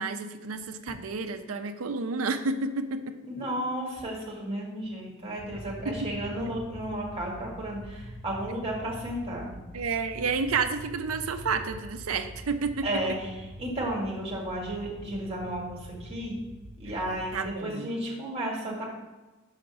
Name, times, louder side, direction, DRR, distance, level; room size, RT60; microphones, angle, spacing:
voice 1, 0.0-3.1 5.8-6.1 9.7-12.9 16.9-17.0 17.3-17.9, right 4 dB, 85° right, 8 dB, 0.6 m, -30 dB
voice 2, 3.4-9.5 12.8-16.4 16.8-18.8, right 1 dB, 30° right, -2 dB, 1.8 m, -33 dB
sound 1, 5.4-17.4, equal, 40° left, 1.2 m, -44 dB
5.8 x 5.2 x 6.0 m, 1.2 s
head